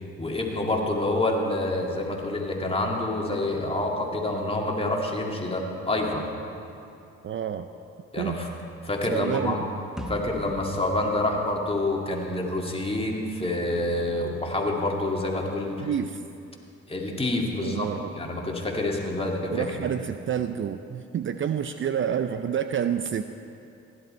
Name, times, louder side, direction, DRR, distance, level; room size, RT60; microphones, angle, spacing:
voice 1, 0.2-6.3 8.1-8.5 8.8-9.6 10.1-15.9 16.9-17.9 18.1-19.8, left 2 dB, 20° left, -1 dB, 2.3 m, -27 dB
voice 2, 7.2-7.7 8.2-8.4 9.0-9.7 15.8-16.2 17.6-18.1 19.5-23.2, right 8 dB, 40° right, 9 dB, 0.5 m, -28 dB
sound 1, 10.0-12.4, equal, ahead, 1.3 m, -40 dB
16.0 x 11.0 x 4.4 m, 2.7 s
supercardioid pair, 70°, 30 cm